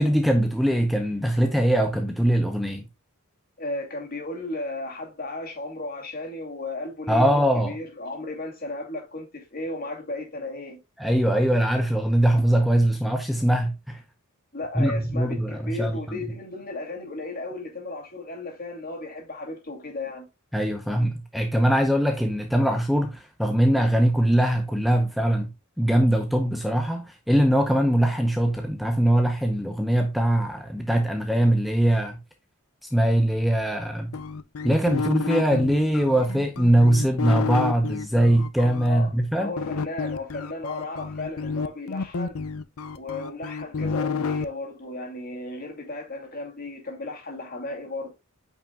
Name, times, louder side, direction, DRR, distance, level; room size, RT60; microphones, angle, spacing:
voice 1, 0.0-2.8 7.1-7.8 11.0-14.0 14.8-16.2 20.5-25.5 25.8-32.2 32.9-34.1 34.6-39.5, right 1 dB, ahead, 0.7 m, -22 dB
voice 2, 3.6-7.3 7.6-10.8 14.5-20.3 38.8-39.1 39.4-42.4 42.9-48.1, left 2 dB, 45° left, 2.6 m, -34 dB
sound 1, 34.1-38.9 39.6-44.5, left 5 dB, 75° left, 0.6 m, -30 dB
8.7 x 5.4 x 2.3 m
head